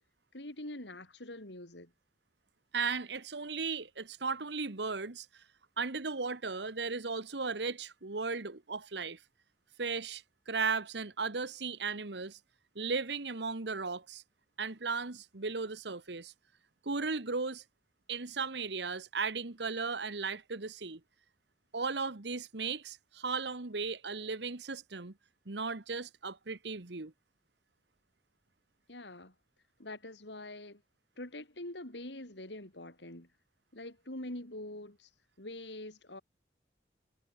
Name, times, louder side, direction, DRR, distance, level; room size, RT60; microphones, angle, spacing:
voice 1, 0.3-1.9 28.9-29.3 29.8-30.8 31.2-33.3 33.7-35.1 35.4-36.2, left 1 dB, 80° left, 4.9 m, -44 dB
voice 2, 2.7-5.4 5.8-9.2 9.8-12.4 12.7-14.2 14.6-16.3 16.8-17.6 18.1-21.0 21.7-25.1 25.5-27.1, right 4 dB, 75° right, 1.4 m, -36 dB
head